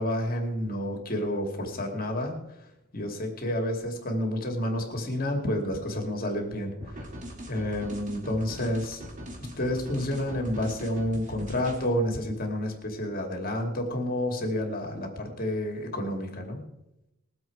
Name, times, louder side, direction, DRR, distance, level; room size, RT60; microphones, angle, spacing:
voice 1, 0.0-2.4 2.9-7.1 7.5-9.0 9.6-16.6, left 1 dB, 45° left, 2 dB, 2.5 m, -30 dB
sound 1, 6.8-11.9, equal, 35° right, 2.7 m, -41 dB
20.5 x 7.8 x 4.7 m, 0.89 s
head